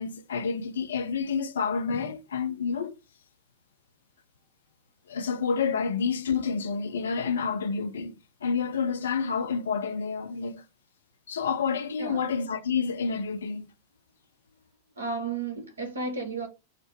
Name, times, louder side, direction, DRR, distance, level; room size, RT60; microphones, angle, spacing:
voice 1, 0.0-3.0 5.1-8.1 8.4-10.6 11.3-13.7, left 5 dB, 65° left, 0.5 m, -29 dB
voice 2, 12.0-12.3 15.0-16.5, right 4 dB, 75° right, 1.0 m, -33 dB
5.6 x 2.0 x 3.3 m
figure-of-eight pair, 90°, 0 cm